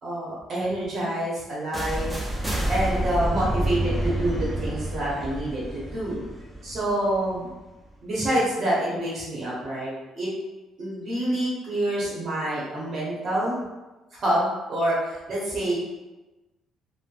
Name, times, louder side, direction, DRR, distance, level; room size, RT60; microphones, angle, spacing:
voice 1, 0.0-2.1 2.7-6.2 6.6-7.5 8.0-10.3 10.8-13.6 14.1-15.8, right 1 dB, 40° right, -6 dB, 0.7 m, -27 dB
sound 1, 1.7-7.6, right 1 dB, 10° right, 0.4 m, -29 dB
3.1 x 2.0 x 2.5 m, 1.1 s
cardioid pair, 170°, 0 cm